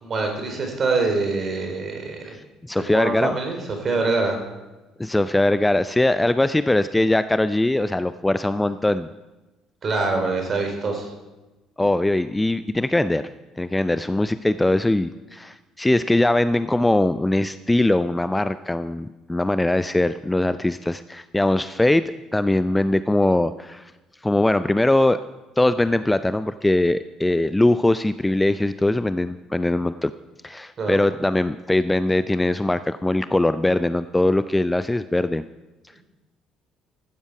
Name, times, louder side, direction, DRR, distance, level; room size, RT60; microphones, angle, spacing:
voice 1, 0.0-2.2 2.8-4.4 9.8-11.1 30.8-31.0, right 3 dB, 40° right, 3 dB, 4.0 m, -24 dB
voice 2, 2.7-3.4 5.0-9.1 11.8-13.2 13.6-22.0 22.3-23.9 24.2-25.2 25.6-30.1 30.4-35.4, left 1 dB, 10° left, 14 dB, 0.5 m, -21 dB
15.5 x 12.5 x 4.8 m, 1.1 s
figure-of-eight pair, 50°, 0 cm